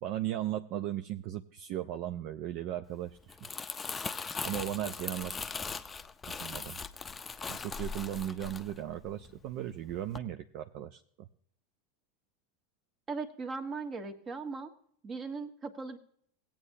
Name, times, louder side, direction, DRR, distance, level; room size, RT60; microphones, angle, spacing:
voice 1, 0.0-3.5 4.4-5.3 6.3-6.8 7.5-11.3, right 12 dB, 55° right, 7 dB, 0.5 m, -37 dB
Crumpling crinkling, 3.1-9.5 9.9-10.2, left 4 dB, 20° left, 0.6 m, -40 dB
voice 2, 13.1-14.7 15.0-16.0, right 4 dB, 30° right, 7 dB, 1.4 m, -38 dB
17.5 x 8.6 x 2.7 m, 0.63 s
hypercardioid pair, 95°, 0 cm